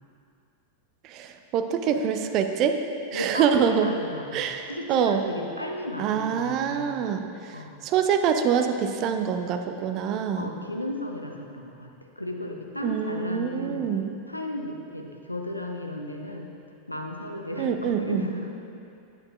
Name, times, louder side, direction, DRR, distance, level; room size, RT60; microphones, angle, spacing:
voice 1, 1.0-2.8 3.1-3.9 4.3-5.2 6.0-10.5 12.8-14.1 17.6-18.3, right 7 dB, 40° right, 6 dB, 0.5 m, -25 dB
voice 2, 3.1-6.9 7.5-7.7 10.4-11.9 12.2-13.8 14.3-16.5 16.9-18.5, left 1 dB, 85° left, 2 dB, 0.6 m, -34 dB
8.8 x 8.6 x 2.4 m, 2.6 s
figure-of-eight pair, 90°, 0 cm